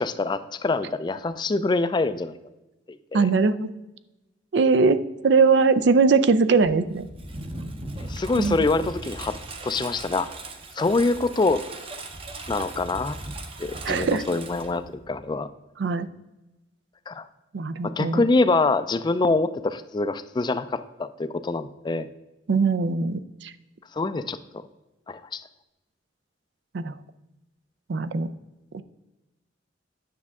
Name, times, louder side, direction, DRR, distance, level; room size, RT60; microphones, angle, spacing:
voice 1, 0.0-2.4 2.9-3.3 8.1-9.3 9.6-10.3 10.8-11.6 12.5-13.2 13.6-15.5 17.1-17.3 17.8-22.1 23.9-24.4 25.1-25.4, left 3 dB, 25° left, 12 dB, 0.3 m, -25 dB
voice 2, 3.1-3.7 4.5-7.1 8.4-8.6 13.8-14.2 15.8-16.1 17.5-18.2 22.5-23.5 26.7-26.9 27.9-28.3 28.7-28.8, right 4 dB, 65° right, 13 dB, 0.4 m, -21 dB
Engine, 6.6-15.3, right 2 dB, 30° right, 0.7 m, -38 dB
9.5 x 6.3 x 3.6 m, 1.0 s
head